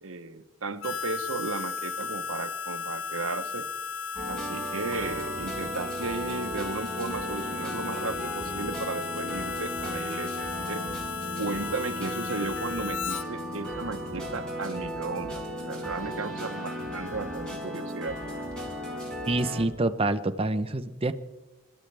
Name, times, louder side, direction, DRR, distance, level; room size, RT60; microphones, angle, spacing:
voice 1, 0.0-3.7 4.3-10.9 11.4-18.2, right 3 dB, 70° right, 9 dB, 1.0 m, -35 dB
Harmonica, 0.8-13.2, left 5 dB, 70° left, 0.6 m, -35 dB
sound 1, 4.1-19.6, equal, 5° left, 5.0 m, -35 dB
voice 2, 19.2-21.1, right 2 dB, 25° right, 9 dB, 0.8 m, -27 dB
30.0 x 13.0 x 3.4 m, 1.1 s
head